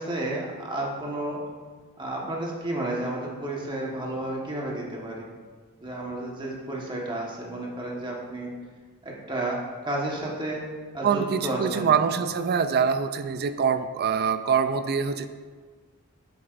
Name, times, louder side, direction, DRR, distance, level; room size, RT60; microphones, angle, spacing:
voice 1, 0.0-1.4 2.0-5.3 5.8-8.5 9.0-10.7 10.9-11.9, right 1 dB, 20° right, -3 dB, 1.3 m, -31 dB
voice 2, 11.0-15.3, right 6 dB, 45° right, 11 dB, 0.4 m, -24 dB
8.1 x 7.5 x 2.5 m, 1.5 s
head